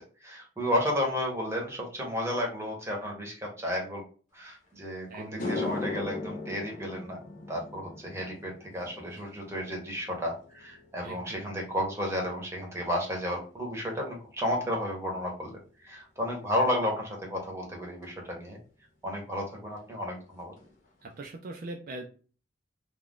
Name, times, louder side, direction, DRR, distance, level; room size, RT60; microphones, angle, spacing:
voice 1, 0.0-4.0 4.3-7.2 7.5-15.6 15.8-18.6 19.0-20.5, left 1 dB, 15° right, 0 dB, 0.8 m, -32 dB
sound 1, 4.7-4.8 5.2-13.7 14.0-14.4 18.0-18.1 19.8-19.9 20.2-20.3 20.6-21.1, left 3 dB, 45° left, 0.9 m, -40 dB
voice 2, 5.1-5.7 11.0-11.5 21.0-22.1, right 2 dB, 50° right, 2 dB, 0.3 m, -42 dB
2.4 x 2.2 x 3.5 m, 0.39 s
head